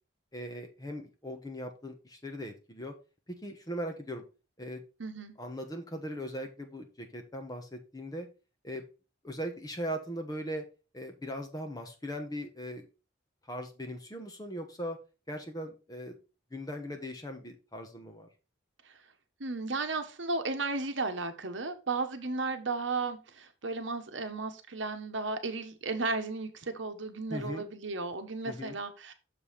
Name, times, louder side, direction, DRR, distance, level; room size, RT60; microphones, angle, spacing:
voice 1, 0.3-2.9 3.3-4.2 4.6-4.8 5.4-8.3 8.6-8.8 9.2-10.6 10.9-12.9 13.5-15.0 15.3-16.2 16.5-18.3 27.3-27.6 28.4-28.8, equal, 20° left, 5 dB, 1.2 m, -39 dB
voice 2, 5.0-5.4 18.8-18.9 19.4-29.1, right 3 dB, 70° right, 7 dB, 1.1 m, -34 dB
6.8 x 5.5 x 4.1 m, 0.32 s
head